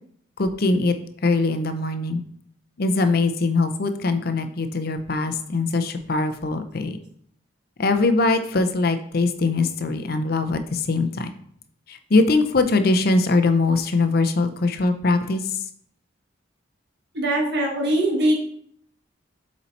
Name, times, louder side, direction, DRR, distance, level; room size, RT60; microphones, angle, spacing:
voice 1, 0.4-0.9 1.2-2.2 2.8-7.0 7.8-11.3 11.9-15.6, left 3 dB, 50° left, 8 dB, 0.6 m, -22 dB
voice 2, 17.1-18.4, right 1 dB, 55° right, 1 dB, 1.5 m, -21 dB
7.2 x 4.2 x 4.1 m, 0.64 s
head